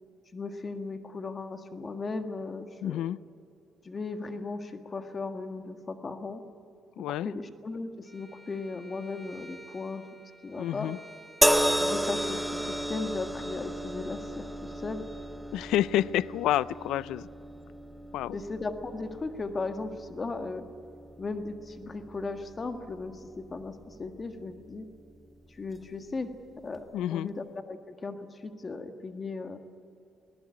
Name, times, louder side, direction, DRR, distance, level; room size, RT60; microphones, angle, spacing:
voice 1, 0.3-3.1 3.8-6.4 7.1-10.1 10.4-10.9 11.8-15.1 18.3-20.6 21.2-24.8 25.5-26.3 26.6-29.6, left 3 dB, 35° left, 7 dB, 1.7 m, -37 dB
voice 2, 2.8-3.2 7.0-7.3 10.6-11.0 15.5-17.3 18.1-18.4 26.9-27.3, left 13 dB, 90° left, 19 dB, 0.4 m, -29 dB
Bowed string instrument, 8.0-12.9, right 1 dB, 15° right, 2.1 m, -52 dB
sound 1, 11.4-24.7 25.7-25.9, equal, ahead, 1.2 m, -33 dB
21.0 x 19.0 x 9.8 m, 2.6 s
cardioid pair, 90°, 0 cm